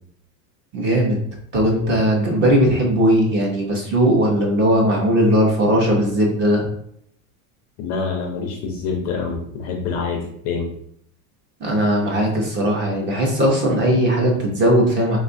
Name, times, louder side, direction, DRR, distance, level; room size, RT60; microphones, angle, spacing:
voice 1, 0.7-1.2 1.5-6.7 11.6-15.2, equal, 25° right, -1 dB, 0.6 m, -18 dB
voice 2, 7.8-10.7, left 5 dB, 40° left, 2 dB, 0.4 m, -26 dB
3.8 x 2.3 x 2.5 m, 0.68 s
supercardioid pair, 150°, 41 cm